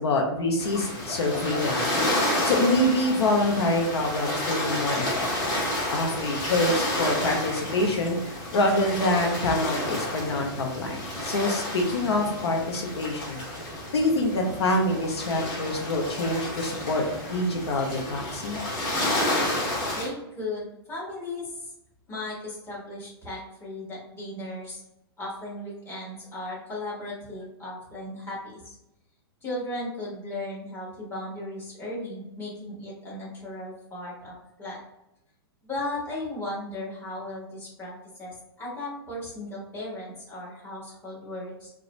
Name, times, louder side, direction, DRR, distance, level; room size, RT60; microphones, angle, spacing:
voice 1, 0.0-1.9 2.4-5.6 5.9-13.4 13.9-18.6, left 1 dB, 85° left, 1 dB, 0.7 m, -26 dB
sound 1, 0.6-20.1, left 1 dB, 45° left, 1.2 m, -30 dB
voice 2, 19.9-21.7 22.1-24.8 25.2-28.8 29.4-34.8 35.6-41.7, left 1 dB, 15° left, -7 dB, 1.1 m, -36 dB
2.4 x 2.1 x 3.0 m, 0.86 s
hypercardioid pair, 140°, 13 cm